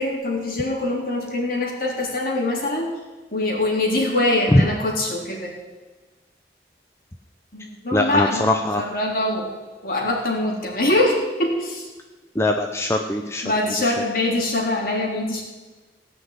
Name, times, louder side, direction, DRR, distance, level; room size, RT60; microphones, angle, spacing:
voice 1, 0.0-2.9 3.3-5.5 7.5-9.5 9.8-11.8 13.4-15.4, left 1 dB, 50° left, -1 dB, 3.7 m, -23 dB
voice 2, 7.9-8.8 12.4-13.4 13.8-13.9, left 1 dB, 15° left, 3 dB, 0.7 m, -21 dB
17.5 x 6.1 x 9.5 m, 1.2 s
head